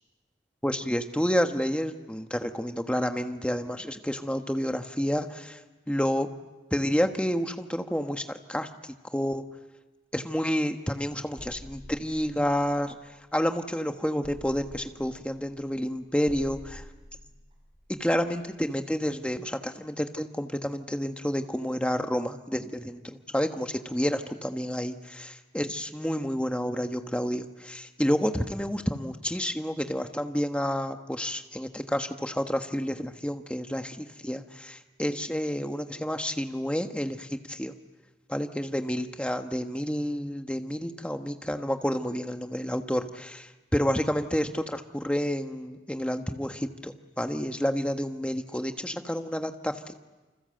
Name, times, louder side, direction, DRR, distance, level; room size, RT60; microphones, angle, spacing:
voice 1, 0.6-5.6 5.9-6.3 6.7-8.7 9.1-9.4 10.1-13.0 13.3-16.8 17.9-37.7 38.3-49.9, equal, 5° left, 6 dB, 1.3 m, -29 dB
sound 1, 11.4-13.7 14.2-18.9, equal, 30° right, 6.7 m, -49 dB
28.5 x 26.5 x 7.8 m, 1.2 s
head